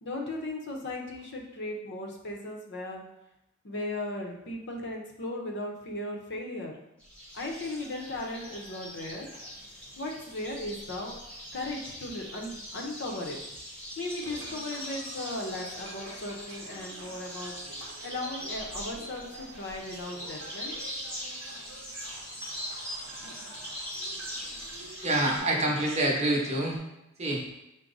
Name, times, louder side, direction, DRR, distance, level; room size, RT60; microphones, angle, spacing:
voice 1, 0.0-3.0 3.6-6.8 7.3-9.3 10.0-11.2 11.5-13.4 14.0-17.5 18.0-20.7, left 2 dB, 55° left, 1 dB, 0.7 m, -37 dB
sound 1, 7.0-25.4, equal, 5° left, 1.1 m, -41 dB
sound 2, 14.2-26.8, right 3 dB, 75° right, 0.7 m, -49 dB
voice 2, 25.0-26.8 27.2-27.4, right 1 dB, 30° right, -2 dB, 0.8 m, -26 dB
5.9 x 2.1 x 3.9 m, 0.88 s
head